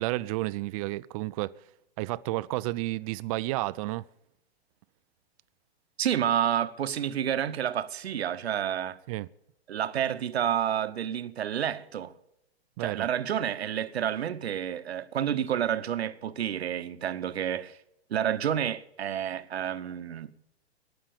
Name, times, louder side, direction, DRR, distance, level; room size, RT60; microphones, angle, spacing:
voice 1, 0.0-1.5 2.0-4.0 9.1-9.3 12.8-13.1, right 19 dB, 35° right, 0.5 m, -31 dB
voice 2, 6.0-9.0 9.7-12.1 12.8-17.8 18.1-20.3, right 9 dB, 70° right, 1.0 m, -29 dB
18.5 x 6.2 x 8.7 m
hypercardioid pair, 115°, 32 cm